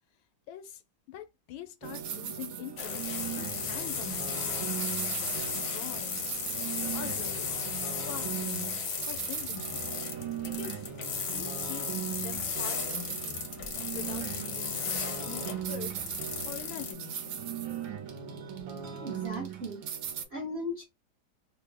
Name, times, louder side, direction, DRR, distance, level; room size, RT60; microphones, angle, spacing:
voice 1, 0.5-0.8 1.1-3.1 3.4-6.3 6.9-7.6 8.0-8.7 9.1-10.0 10.4-10.9 11.3-13.6 13.9-14.9 15.2-15.9 16.5-17.4, left 9 dB, 90° left, 1.4 m, -44 dB
sound 1, 1.8-20.2, right 8 dB, 80° right, 1.4 m, -38 dB
sound 2, 2.8-16.9, left 5 dB, 65° left, 0.7 m, -35 dB
voice 2, 19.0-20.9, left 1 dB, 55° right, 0.7 m, -38 dB
3.5 x 2.1 x 3.3 m
omnidirectional pair, 2.1 m